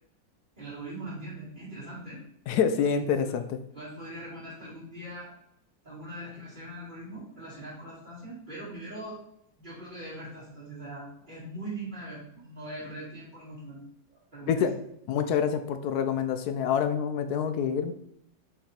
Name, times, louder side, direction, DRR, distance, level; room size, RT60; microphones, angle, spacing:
voice 1, 0.6-2.2 2.8-3.3 3.7-5.3 5.8-9.2 9.6-13.8 14.1-14.7, right 1 dB, 25° right, -12 dB, 2.6 m, -41 dB
voice 2, 2.5-3.6 14.5-14.7 15.1-17.9, left 7 dB, 70° left, 9 dB, 1.0 m, -27 dB
5.4 x 4.8 x 4.4 m, 0.75 s
omnidirectional pair, 2.0 m